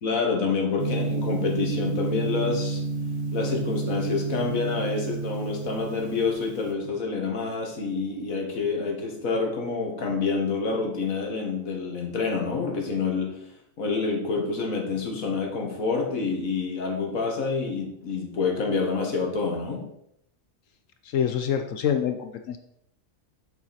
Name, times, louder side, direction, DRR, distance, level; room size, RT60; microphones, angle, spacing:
voice 1, 0.0-2.8 3.3-13.4 13.8-19.9, left 4 dB, 90° left, 1 dB, 2.0 m, -27 dB
Gong, 0.8-6.7, right 3 dB, 45° right, 1.1 m, -30 dB
voice 2, 21.0-22.6, left 8 dB, 75° left, 7 dB, 1.0 m, -26 dB
7.3 x 7.2 x 4.2 m, 0.75 s
omnidirectional pair, 1.4 m